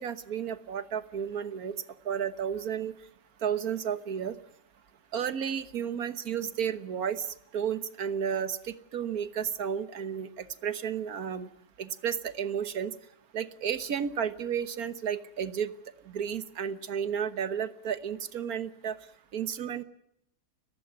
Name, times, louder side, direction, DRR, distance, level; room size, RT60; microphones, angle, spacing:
voice 1, 0.0-1.8 2.0-2.9 3.4-4.3 5.1-11.5 11.8-12.9 13.3-15.7 16.1-18.9 19.3-19.8, right 8 dB, 70° right, 12 dB, 1.7 m, -32 dB
29.5 x 15.5 x 9.5 m, 0.79 s
omnidirectional pair, 1.7 m